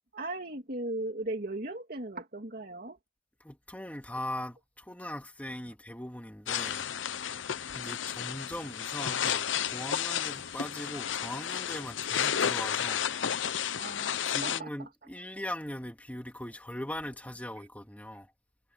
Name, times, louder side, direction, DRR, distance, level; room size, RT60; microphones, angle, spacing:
voice 1, 0.1-3.0 10.5-10.6 13.1-13.3 13.8-14.9, right 2 dB, 50° right, 2.3 m, -38 dB
voice 2, 3.4-6.9 7.7-13.1 14.2-18.3, left 1 dB, 10° left, 2.6 m, -40 dB
sound 1, 6.5-14.6, left 9 dB, 80° left, 0.7 m, -32 dB
head